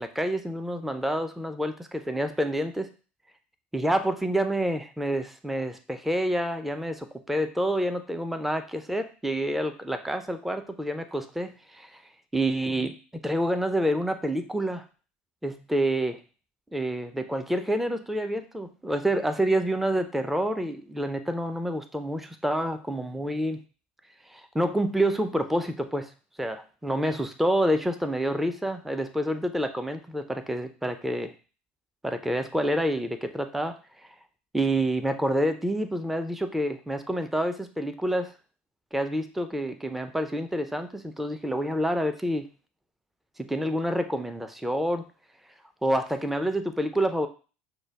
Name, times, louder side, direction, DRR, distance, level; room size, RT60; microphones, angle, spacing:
voice 1, 0.0-2.9 3.7-12.0 12.3-13.0 13.2-14.8 15.4-16.2 16.7-23.6 24.3-26.1 26.4-31.3 32.0-34.2 34.5-38.3 38.9-42.5 43.4-45.1 45.8-47.3, right 1 dB, 5° right, 9 dB, 0.4 m, -28 dB
6.3 x 2.1 x 3.4 m, 0.36 s
figure-of-eight pair, 70°, 6 cm